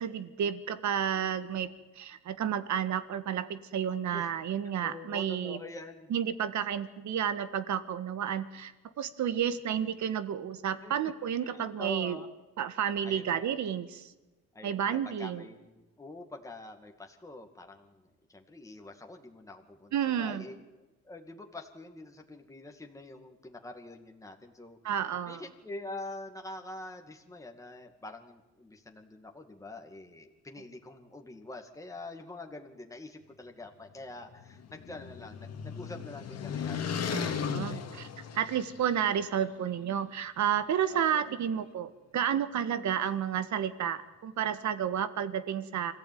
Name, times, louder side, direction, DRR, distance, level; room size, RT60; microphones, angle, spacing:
voice 1, 0.0-5.6 6.1-12.2 12.6-14.1 14.6-15.4 19.9-20.4 24.8-25.4 37.1-38.1 38.3-45.9, right 9 dB, 60° right, 12 dB, 1.7 m, -31 dB
voice 2, 4.8-6.1 10.8-11.1 11.4-12.3 13.0-13.5 14.5-25.0 25.3-38.1 40.9-41.4, left 2 dB, 10° left, 3 dB, 2.3 m, -46 dB
sound 1, 34.2-39.0, left 7 dB, 50° left, 2.3 m, -36 dB
25.5 x 15.5 x 9.4 m, 1.1 s
cardioid pair, 110°, 32 cm